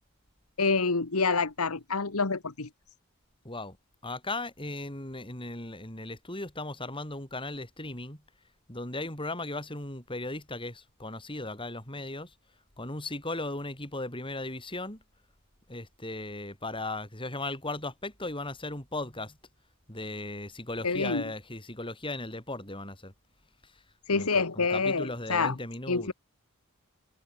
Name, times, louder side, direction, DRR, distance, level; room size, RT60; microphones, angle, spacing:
voice 1, 0.6-2.7 20.8-21.2 24.1-25.5 25.9-26.1, left 4 dB, 75° left, 1.5 m, -27 dB
voice 2, 3.4-3.8 4.0-8.2 8.7-12.3 12.8-15.0 15.7-19.4 19.9-23.1 23.6-23.7 24.1-26.1, left 2 dB, 25° left, 6.7 m, -37 dB
head